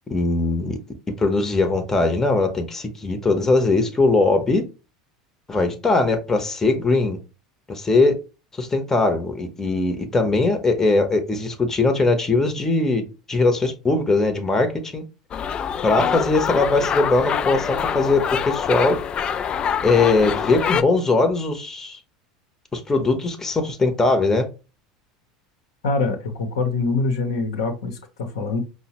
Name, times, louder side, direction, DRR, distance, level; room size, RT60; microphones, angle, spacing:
voice 1, 0.1-0.8 1.2-4.6 5.5-7.2 7.7-8.2 8.5-15.0 15.8-19.0 19.8-22.0 22.7-24.5, left 3 dB, 15° left, 0.9 m, -20 dB
sound 1, 15.3-20.8, left 8 dB, 35° left, 0.3 m, -25 dB
voice 2, 25.8-28.6, left 3 dB, 70° left, 0.9 m, -24 dB
5.4 x 2.2 x 2.9 m
hypercardioid pair, 80°, 3 cm